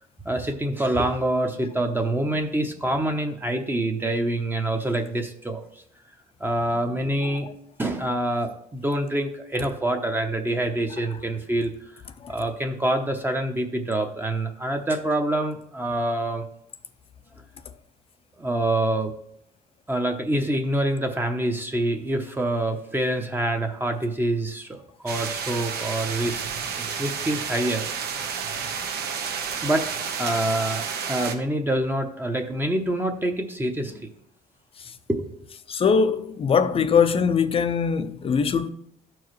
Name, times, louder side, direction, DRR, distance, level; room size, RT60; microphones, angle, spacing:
voice 1, 0.2-5.8 6.4-7.5 7.8-11.7 12.3-16.4 18.4-19.1 19.9-26.4 26.8-27.8 29.3-29.8 30.2-34.1 35.1-35.4, right 1 dB, 10° right, 0.8 m, -26 dB
sound 1, 25.1-31.3, right 6 dB, 70° right, 1.0 m, -31 dB
voice 2, 35.7-38.7, left 6 dB, 35° left, 0.5 m, -22 dB
12.5 x 4.7 x 3.1 m
cardioid pair, 110°, 17 cm